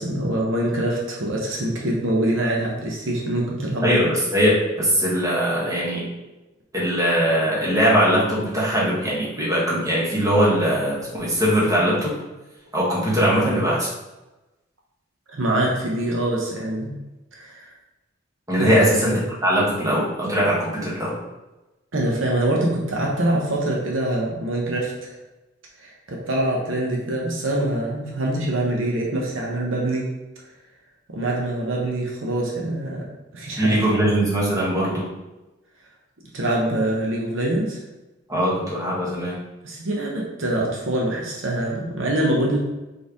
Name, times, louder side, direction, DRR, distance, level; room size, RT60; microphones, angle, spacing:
voice 1, 0.0-3.9 15.3-16.9 17.3-17.7 18.6-19.2 21.9-25.1 25.8-30.1 31.1-33.1 33.3-33.8 34.0-34.1 36.3-37.8 39.6-42.6, right 1 dB, 70° right, -2 dB, 0.9 m, -24 dB
voice 2, 3.8-6.0 6.7-12.1 12.7-13.9 18.5-19.1 19.4-21.1 33.6-35.0 38.3-39.4, equal, 15° right, -6 dB, 1.4 m, -21 dB
4.3 x 3.3 x 3.5 m, 1.0 s
head